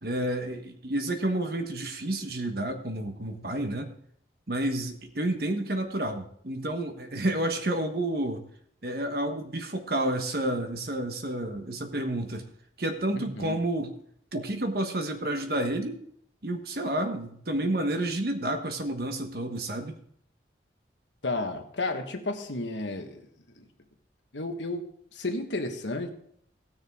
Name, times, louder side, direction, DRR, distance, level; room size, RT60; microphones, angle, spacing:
voice 1, 0.0-3.9 4.5-8.4 8.8-12.4 12.8-13.9 14.3-16.0 16.4-19.9, right 1 dB, 55° right, 6 dB, 1.3 m, -30 dB
voice 2, 13.1-13.5 21.2-23.2 23.6-23.7 24.3-24.8 25.1-26.1, left 2 dB, 85° left, 5 dB, 1.4 m, -32 dB
18.0 x 6.5 x 3.7 m, 0.67 s
head